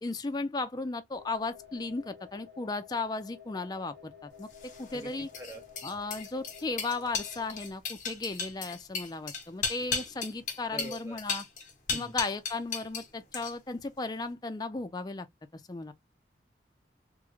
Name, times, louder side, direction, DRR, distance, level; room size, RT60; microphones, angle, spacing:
voice 1, 0.0-5.3 5.8-11.4 11.9-15.3 15.5-15.9, left 3 dB, 20° left, 0.3 m, -35 dB
sound 1, 1.1-7.7, left 8 dB, 70° right, 1.1 m, -52 dB
sound 2, 4.5-13.1 13.3-13.8, left 5 dB, 45° left, 0.8 m, -36 dB
voice 2, 10.7-11.2 11.9-12.1, right 1 dB, 15° right, 0.7 m, -43 dB
3.5 x 2.1 x 3.0 m
head